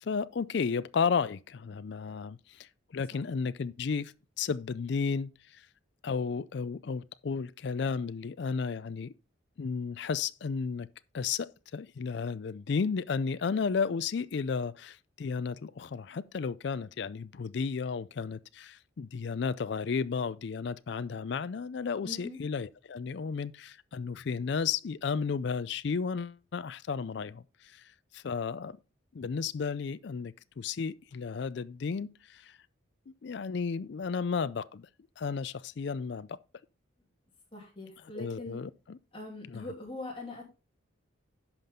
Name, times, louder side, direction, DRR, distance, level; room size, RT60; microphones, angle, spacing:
voice 1, 0.0-5.6 6.0-9.1 9.6-10.9 11.1-28.8 29.1-32.6 33.2-34.9 35.2-36.4 38.2-39.0 39.5-39.7, left 5 dB, 55° left, 0.4 m, -33 dB
voice 2, 22.0-22.4 37.5-38.6 39.1-40.4, left 2 dB, 25° left, 2.9 m, -42 dB
11.0 x 5.9 x 3.6 m
head